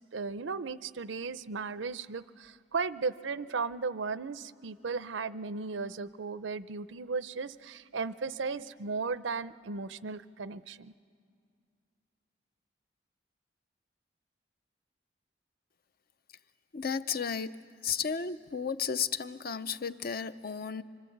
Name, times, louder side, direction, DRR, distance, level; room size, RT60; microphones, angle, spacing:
voice 1, 0.1-10.9, right 4 dB, 85° right, 15 dB, 0.6 m, -36 dB
voice 2, 16.7-17.6 17.8-20.8, left 6 dB, 55° left, 12 dB, 0.6 m, -33 dB
25.5 x 24.5 x 8.0 m, 2.3 s
head